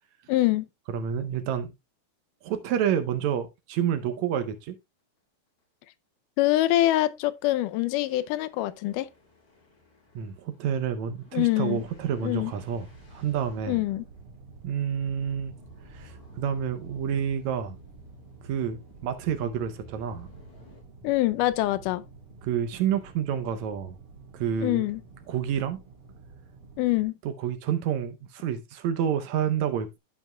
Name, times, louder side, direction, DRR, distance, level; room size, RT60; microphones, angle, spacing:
voice 1, 0.3-0.7 6.4-9.1 11.3-11.8 12.2-12.5 13.7-14.1 21.0-22.0 24.6-25.0 26.8-27.2, left 16 dB, 90° left, 2.2 m, -24 dB
voice 2, 0.9-1.7 2.4-4.8 10.2-13.8 14.6-15.5 15.9-17.8 18.4-20.3 22.4-24.0 24.3-24.9 25.3-25.8 27.2-30.0, right 8 dB, 75° right, 1.9 m, -29 dB
sound 1, 4.1-4.3 4.6-4.7 5.0-5.2 5.5-5.6 6.9-20.8, left 1 dB, 70° left, 6.8 m, -56 dB
sound 2, 11.7-27.1, right 3 dB, 50° right, 2.5 m, -50 dB
14.0 x 5.2 x 2.2 m
omnidirectional pair, 3.6 m